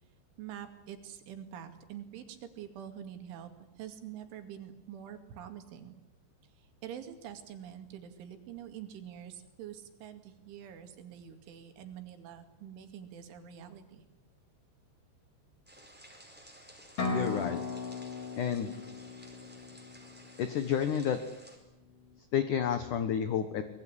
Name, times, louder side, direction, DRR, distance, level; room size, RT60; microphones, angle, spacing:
voice 1, 0.4-3.5 3.8-5.9 6.6-14.0, right 9 dB, 80° right, 7 dB, 4.8 m, -46 dB
sound 1, 15.7-21.6, right 1 dB, ahead, 4.4 m, -54 dB
sound 2, 17.0-20.7, left 4 dB, 35° left, 5.0 m, -37 dB
voice 2, 17.1-17.6 18.4-18.7 20.4-21.2 22.3-23.6, left 8 dB, 70° left, 10 dB, 1.9 m, -30 dB
24.5 x 21.5 x 9.9 m, 0.89 s
omnidirectional pair, 5.5 m